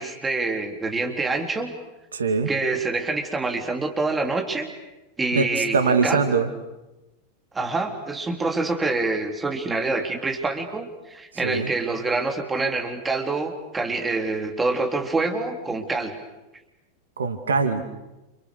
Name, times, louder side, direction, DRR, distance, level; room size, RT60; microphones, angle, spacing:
voice 1, 0.0-1.7 2.5-4.7 5.2-6.2 7.5-16.2, right 3 dB, 15° right, 3 dB, 4.0 m, -26 dB
voice 2, 2.1-2.5 5.3-5.5 5.7-6.5 11.4-11.7 17.2-17.8, right 5 dB, 70° right, 7 dB, 2.4 m, -22 dB
29.5 x 29.5 x 6.7 m, 1.0 s
figure-of-eight pair, 90°, 0 cm